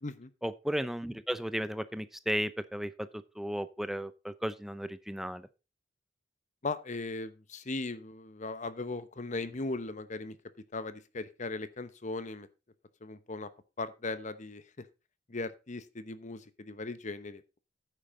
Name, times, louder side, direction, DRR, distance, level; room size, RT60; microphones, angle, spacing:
voice 1, 0.4-5.5, equal, ahead, 14 dB, 0.6 m, -35 dB
voice 2, 6.6-10.4 10.7-12.5 13.0-13.5 13.8-14.8 15.3-17.6, left 3 dB, 40° left, 13 dB, 0.9 m, -38 dB
9.6 x 8.9 x 3.8 m, 0.29 s
head